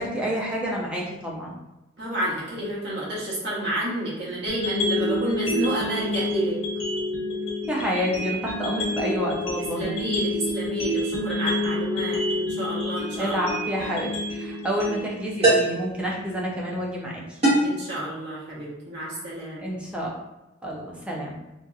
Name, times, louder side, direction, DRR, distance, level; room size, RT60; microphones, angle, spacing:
voice 1, 0.0-1.5 7.7-9.9 13.2-17.4 19.6-20.1 20.6-21.3, equal, 5° right, -3 dB, 0.5 m, -29 dB
voice 2, 2.0-6.6 9.7-14.0 17.6-19.7, right 1 dB, 55° right, -6 dB, 1.0 m, -30 dB
sound 1, 4.5-16.5, left 1 dB, 85° left, 0.8 m, -29 dB
sound 2, 13.8-14.0 15.4-15.9 17.4-17.8, right 1 dB, 30° right, 1.2 m, -20 dB
2.8 x 2.7 x 2.3 m, 0.99 s
head